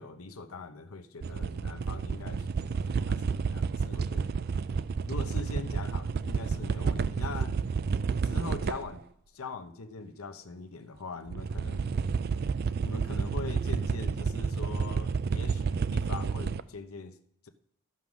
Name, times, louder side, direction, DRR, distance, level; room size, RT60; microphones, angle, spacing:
voice 1, 0.0-4.3 5.1-7.6 8.2-9.0 9.3-11.9 12.8-17.2 17.4-17.5, left 4 dB, 75° left, 8 dB, 0.8 m, -42 dB
sound 1, 1.2-9.0 11.3-16.6, right 5 dB, 45° right, 0.3 m, -30 dB
12.5 x 5.6 x 6.2 m, 0.71 s
head